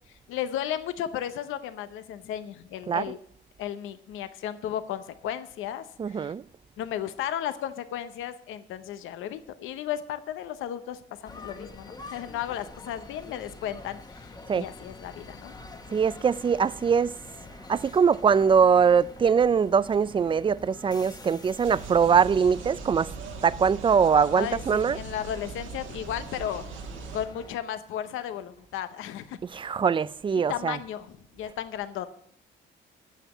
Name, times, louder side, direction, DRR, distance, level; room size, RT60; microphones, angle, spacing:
voice 1, 0.1-3.2 3.6-6.3 6.8-15.8 24.4-26.7 27.1-29.4 30.5-32.1, left 10 dB, 90° left, 0.8 m, -34 dB
voice 2, 6.0-6.4 14.5-14.7 15.9-17.1 17.7-23.1 23.4-25.0 29.4-30.8, right 6 dB, 25° right, 0.4 m, -22 dB
sound 1, 11.2-27.6, left 2 dB, 20° left, 1.1 m, -46 dB
sound 2, 21.6-27.3, right 5 dB, 80° right, 1.4 m, -40 dB
9.2 x 7.3 x 8.1 m
cardioid pair, 90°, 20 cm